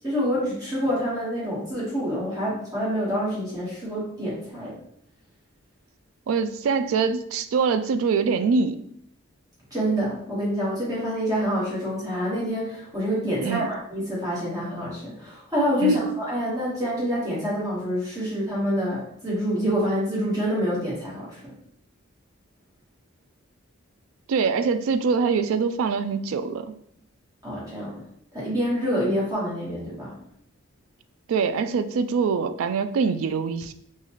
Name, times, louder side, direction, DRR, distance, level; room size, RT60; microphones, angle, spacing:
voice 1, 0.0-4.7 9.7-21.4 27.4-28.0 28.3-30.2, equal, 20° right, -8 dB, 1.5 m, -27 dB
voice 2, 6.3-8.8 13.4-13.7 15.8-16.1 24.3-26.8 31.3-33.7, right 5 dB, 80° right, 12 dB, 0.3 m, -24 dB
4.0 x 2.4 x 3.1 m, 0.68 s
head